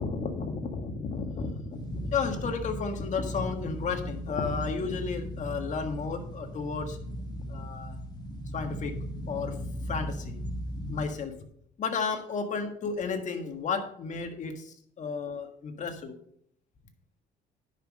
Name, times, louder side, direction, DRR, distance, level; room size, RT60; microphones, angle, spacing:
voice 1, 0.0-7.0 7.5-8.0 8.5-8.9 9.3-9.6 9.9-10.4 10.9-11.3 11.8-16.1, left 5 dB, 45° left, 5 dB, 1.7 m, -33 dB
sound 1, 1.7-11.1, equal, 25° left, 1.6 m, -37 dB
10.0 x 6.1 x 5.1 m, 0.69 s
cardioid pair, 110°, 17 cm